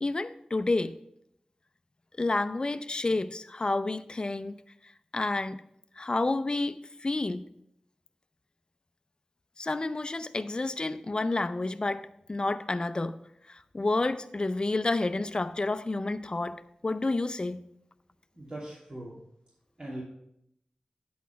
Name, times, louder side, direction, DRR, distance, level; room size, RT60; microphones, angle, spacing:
voice 1, 0.0-0.9 2.2-4.6 5.1-5.6 6.0-7.4 9.6-13.2 13.5-17.6, left 2 dB, 40° left, 0.5 m, -30 dB
voice 2, 18.3-19.2 19.8-20.0, right 1 dB, 45° right, 2.7 m, -40 dB
9.4 x 4.2 x 5.6 m
wide cardioid pair, 55°, 2 cm